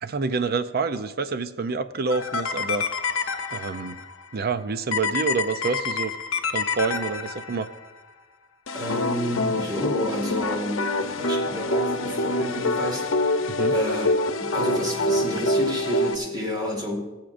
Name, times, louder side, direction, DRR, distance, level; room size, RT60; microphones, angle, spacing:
voice 1, 0.0-2.8 3.5-4.0 4.3-6.1 6.5-7.7 13.5-13.7, right 4 dB, 50° right, 12 dB, 0.5 m, -27 dB
sound 1, 2.1-4.0 4.9-7.7 8.7-16.2, left 2 dB, 85° left, 0.8 m, -26 dB
voice 2, 8.7-14.1 14.5-17.0, equal, 20° right, 0 dB, 2.0 m, -30 dB
20.5 x 7.3 x 2.6 m, 1.2 s
head